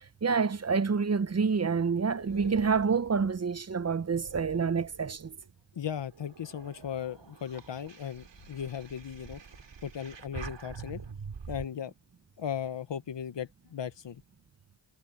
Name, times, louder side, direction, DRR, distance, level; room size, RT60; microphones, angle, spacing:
voice 1, 0.0-5.3, right 5 dB, 35° right, 0.7 m, -28 dB
sound 1, 1.2-5.5 6.0-11.7, right 5 dB, 85° right, 3.1 m, -46 dB
voice 2, 5.7-9.4 9.8-11.0 11.5-11.9 12.4-14.2, left 8 dB, 85° left, 1.1 m, -37 dB
cardioid pair, 55°, 42 cm